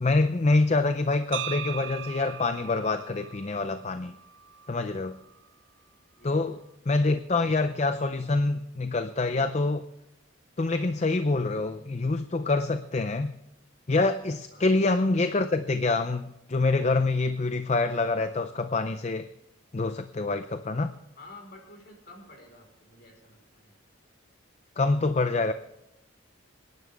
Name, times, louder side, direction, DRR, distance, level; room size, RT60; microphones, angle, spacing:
voice 1, 0.0-4.2 4.7-5.1 6.2-9.9 10.6-13.3 13.9-19.3 19.7-20.9 24.8-25.5, left 3 dB, 35° left, 10 dB, 0.5 m, -26 dB
sound 1, 1.3-5.4, right 9 dB, 65° right, 0.6 m, -40 dB
voice 2, 21.2-23.8, left 2 dB, 50° left, 2 dB, 4.3 m, -50 dB
25.5 x 10.5 x 3.5 m, 0.87 s
head